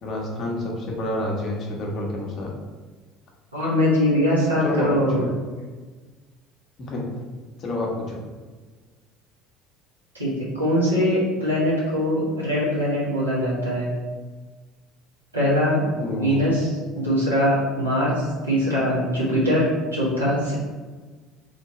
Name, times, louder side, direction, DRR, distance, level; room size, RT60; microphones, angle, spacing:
voice 1, 0.0-2.5 4.6-4.9 5.1-5.3 6.8-7.1 7.6-8.2 15.9-16.4, left 1 dB, 45° left, -1 dB, 1.1 m, -28 dB
voice 2, 3.5-5.2 10.1-13.9 15.3-15.8 16.1-20.5, equal, 90° right, -8 dB, 1.4 m, -22 dB
3.3 x 2.8 x 4.2 m, 1.4 s
figure-of-eight pair, 60°, 0 cm